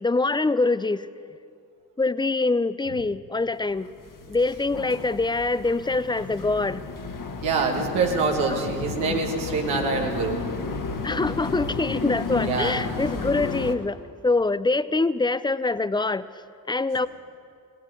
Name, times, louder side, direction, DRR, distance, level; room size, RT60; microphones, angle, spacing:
voice 1, 0.0-1.1 2.0-3.9 4.3-6.8 11.0-14.0 14.2-16.2 16.7-17.1, left 3 dB, 10° left, 16 dB, 0.4 m, -24 dB
sound 1, 3.8-13.8, left 4 dB, 45° left, 1.4 m, -33 dB
voice 2, 7.4-10.4 12.4-12.8, right 4 dB, 85° right, 1 dB, 1.5 m, -25 dB
17.0 x 7.6 x 9.8 m, 2.3 s
hypercardioid pair, 40°, 46 cm